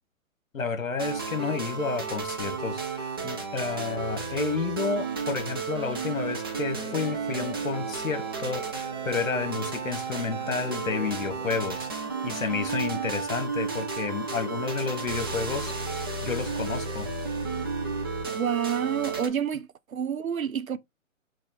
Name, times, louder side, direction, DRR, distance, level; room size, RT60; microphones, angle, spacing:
voice 1, 0.5-11.9 12.2-15.7 16.2-17.1, left 5 dB, 75° left, 1.2 m, -31 dB
sound 1, 1.0-19.3, right 5 dB, 20° right, 0.4 m, -32 dB
Guitar, 6.5-13.7 14.1-17.9, left 5 dB, 45° left, 2.0 m, -48 dB
voice 2, 18.3-20.8, right 8 dB, 90° right, 0.6 m, -29 dB
4.0 x 2.5 x 4.1 m
figure-of-eight pair, 130°, 40 cm